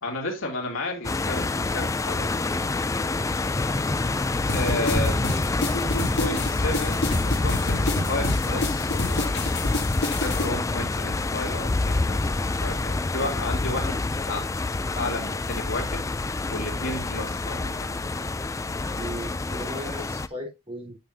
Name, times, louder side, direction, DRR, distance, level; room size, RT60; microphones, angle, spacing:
voice 1, 0.0-1.5 1.7-2.4 4.5-5.1 5.7-9.4 10.0-14.6 14.9-16.1 16.5-18.0, left 2 dB, 75° left, 3.0 m, -32 dB
sound 1, 1.0-20.3, left 3 dB, 15° left, 0.3 m, -27 dB
sound 2, 4.5-10.5, left 2 dB, 60° left, 2.6 m, -29 dB
voice 2, 4.7-5.2 19.0-21.0, equal, 30° right, 4.0 m, -37 dB
9.4 x 6.9 x 2.7 m
head